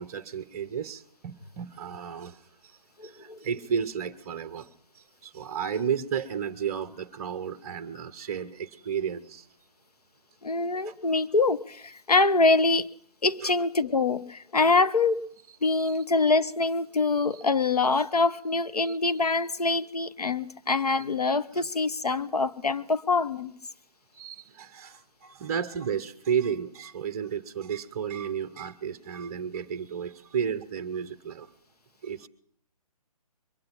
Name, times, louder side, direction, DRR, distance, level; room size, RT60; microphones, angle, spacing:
voice 1, 0.0-2.4 3.0-9.5 10.8-10.9 13.4-13.5 15.6-16.0 17.3-17.4 18.8-18.9 24.1-31.5 32.0-32.3, right 7 dB, 25° right, 12 dB, 0.6 m, -33 dB
voice 2, 3.0-3.4 10.4-12.9 13.2-15.3 15.6-23.5, left 3 dB, 80° left, 11 dB, 0.9 m, -25 dB
22.5 x 10.5 x 5.8 m, 0.69 s
figure-of-eight pair, 140°, 19 cm